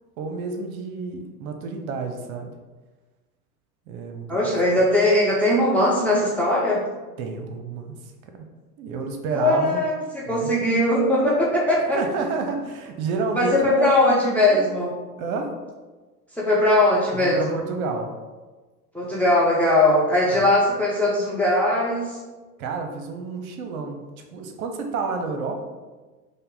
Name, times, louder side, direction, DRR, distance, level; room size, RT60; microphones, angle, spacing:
voice 1, 0.2-2.5 3.9-4.5 7.2-8.3 8.8-9.8 10.3-10.5 11.9-14.7 15.2-15.6 17.1-18.1 20.3-20.5 22.6-24.0 24.3-25.6, right 4 dB, 60° right, 5 dB, 0.8 m, -30 dB
voice 2, 4.3-6.8 9.3-12.0 13.4-14.9 16.3-17.6 18.9-22.2, left 1 dB, 5° left, -5 dB, 0.7 m, -20 dB
5.3 x 2.2 x 3.8 m, 1.3 s
hypercardioid pair, 90°, 47 cm